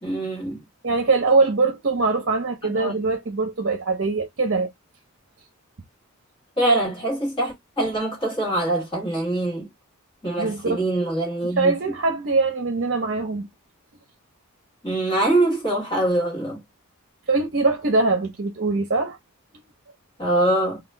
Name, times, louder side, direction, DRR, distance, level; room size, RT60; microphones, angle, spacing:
voice 1, 0.0-0.6 2.6-3.0 6.6-9.7 10.2-11.7 14.8-16.6 20.2-20.8, right 1 dB, 20° left, 1.6 m, -23 dB
voice 2, 0.8-4.7 10.4-10.8 11.6-13.5 17.3-19.2, right 3 dB, 50° right, 0.7 m, -22 dB
2.8 x 2.3 x 3.3 m
head